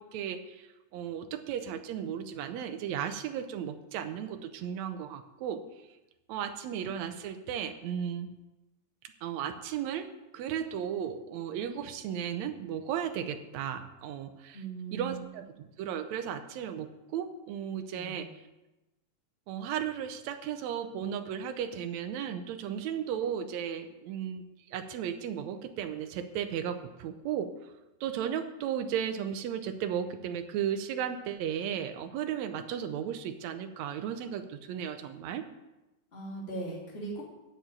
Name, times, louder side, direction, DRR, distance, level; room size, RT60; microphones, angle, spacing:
voice 1, 0.0-5.6 6.3-8.3 9.2-14.6 14.9-18.3 19.5-27.5 28.0-35.4, right 9 dB, 80° right, 7 dB, 1.6 m, -35 dB
voice 2, 14.5-15.2 17.9-18.3 36.1-37.2, right 3 dB, 20° left, -3 dB, 2.5 m, -39 dB
8.2 x 7.2 x 8.7 m, 1.0 s
omnidirectional pair, 4.1 m